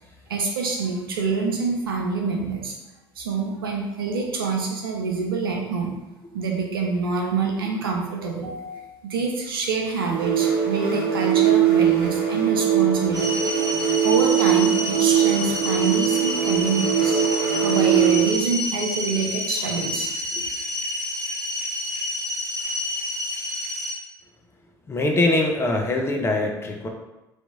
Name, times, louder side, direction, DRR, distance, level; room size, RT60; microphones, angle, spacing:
voice 1, 0.3-2.7 3.2-6.0 6.3-13.4 14.0-20.1, right 4 dB, 75° right, 0 dB, 0.6 m, -26 dB
sound 1, 10.0-18.4, right 9 dB, 55° right, 1.0 m, -21 dB
sound 2, 13.1-23.9, left 1 dB, 30° right, 0.8 m, -29 dB
voice 2, 24.9-26.9, left 2 dB, 20° left, 1 dB, 0.6 m, -23 dB
2.9 x 2.6 x 3.5 m, 0.99 s
figure-of-eight pair, 65°, 12 cm